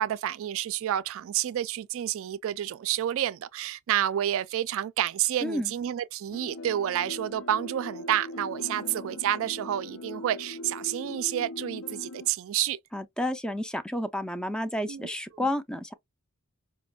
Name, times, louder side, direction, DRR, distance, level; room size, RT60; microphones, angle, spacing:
voice 1, 0.0-12.8 14.9-15.5, right 11 dB, 70° right, 0.3 m, -29 dB
voice 2, 5.4-5.7 12.9-15.9, left 1 dB, 5° left, 0.4 m, -31 dB
sound 1, 6.3-12.3, left 2 dB, 85° left, 0.5 m, -41 dB
5.0 x 2.1 x 2.3 m
head